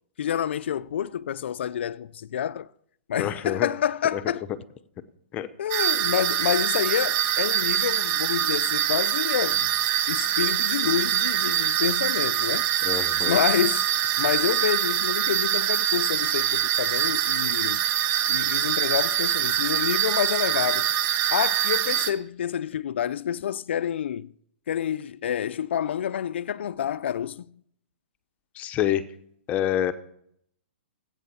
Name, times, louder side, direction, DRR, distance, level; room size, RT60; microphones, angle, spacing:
voice 1, 0.2-2.7 3.1-4.5 5.6-9.7 10.1-12.7 13.2-13.8 14.2-17.8 18.3-20.9 21.3-24.3 24.7-27.6, left 9 dB, 70° left, 0.5 m, -28 dB
voice 2, 3.2-3.7 4.1-4.2 5.3-5.5 12.8-13.4 28.5-29.0 29.5-29.9, left 11 dB, 25° left, 0.9 m, -26 dB
sound 1, 5.7-22.1, right 11 dB, 30° right, 0.9 m, -24 dB
16.0 x 8.9 x 7.1 m
hypercardioid pair, 145°, 6 cm